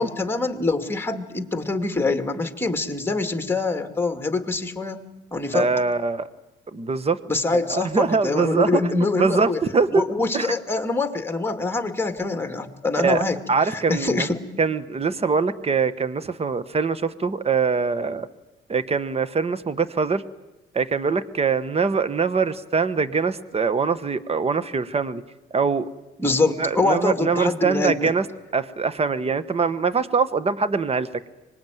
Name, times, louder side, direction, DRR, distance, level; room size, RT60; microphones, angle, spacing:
voice 1, 0.0-5.0 5.3-5.7 7.3-9.6 9.9-14.4 26.2-28.1, left 3 dB, 10° left, 7 dB, 2.4 m, -24 dB
voice 2, 5.5-6.3 6.7-7.2 7.5-8.8 9.2-10.0 10.3-10.5 13.0-13.2 13.5-14.3 14.6-18.3 18.7-20.2 20.7-25.2 25.5-25.8 26.2-26.3 26.6-28.3 28.5-31.1, right 5 dB, 30° right, 15 dB, 1.2 m, -23 dB
24.5 x 21.0 x 9.3 m, 1.0 s
cardioid pair, 90°, 20 cm